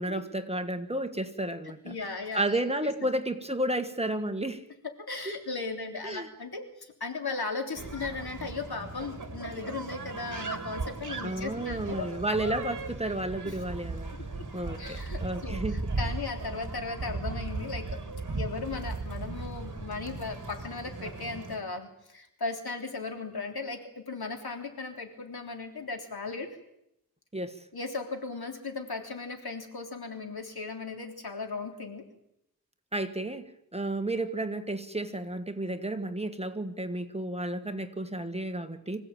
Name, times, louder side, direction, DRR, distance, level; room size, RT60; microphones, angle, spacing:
voice 1, 0.0-1.9 2.3-4.6 6.0-6.3 11.2-14.1 14.5-15.8 27.3-27.6 32.9-39.0, right 1 dB, 15° right, 7 dB, 1.5 m, -32 dB
voice 2, 1.8-3.1 5.1-12.1 13.4-13.6 14.1-14.4 14.8-18.0 18.3-26.5 27.7-32.0, left 4 dB, 70° left, 4 dB, 3.6 m, -37 dB
sound 1, 7.7-21.6, right 3 dB, 50° right, 2.9 m, -37 dB
25.5 x 16.0 x 8.9 m, 0.82 s
wide cardioid pair, 90°, 39 cm